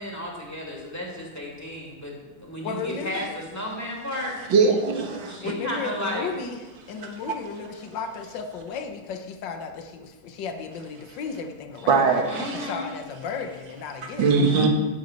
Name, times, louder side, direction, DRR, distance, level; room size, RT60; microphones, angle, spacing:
voice 1, 0.0-4.4 5.3-6.3 12.3-12.9, left 1 dB, 10° left, -3 dB, 2.8 m, -33 dB
voice 2, 2.6-3.4 5.4-14.3, left 5 dB, 70° left, 5 dB, 1.7 m, -34 dB
voice 3, 4.5-5.4 11.9-12.7 14.2-14.7, right 4 dB, 75° right, 2 dB, 2.2 m, -21 dB
17.5 x 8.0 x 4.5 m, 1.2 s
omnidirectional pair, 2.1 m